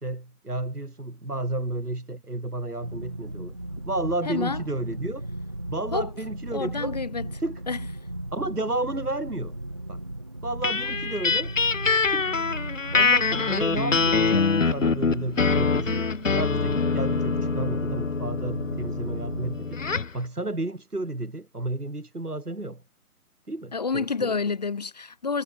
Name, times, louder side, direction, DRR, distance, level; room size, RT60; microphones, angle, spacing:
voice 1, 0.0-3.6 3.9-5.3 5.7-7.0 7.4-7.6 8.3-9.6 9.9-10.0 10.4-11.5 12.1-12.3 12.9-16.0 16.3-19.8 20.1-22.8 23.5-24.4, right 2 dB, 85° right, 2.9 m, -32 dB
sound 1, 2.8-19.5, right 1 dB, 20° right, 0.7 m, -36 dB
voice 2, 4.3-4.6 5.9-6.1 6.5-7.3 7.7-7.8 23.7-25.4, left 5 dB, 25° left, 1.0 m, -28 dB
sound 2, 10.6-20.2, left 4 dB, 55° left, 1.8 m, -25 dB
figure-of-eight pair, 145°, 45 cm